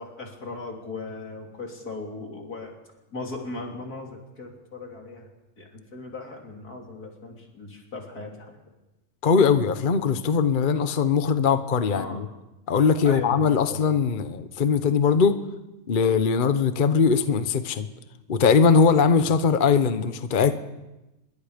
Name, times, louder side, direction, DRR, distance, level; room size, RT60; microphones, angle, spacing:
voice 1, 0.0-2.7 3.1-5.3 5.6-8.5 11.9-12.2 13.0-13.9, left 3 dB, 90° left, 1 dB, 3.9 m, -38 dB
voice 2, 9.2-12.3 12.7-15.4 15.9-17.9 18.3-20.6, left 5 dB, 40° left, 11 dB, 1.0 m, -21 dB
25.0 x 22.5 x 5.2 m, 1.0 s
omnidirectional pair, 1.6 m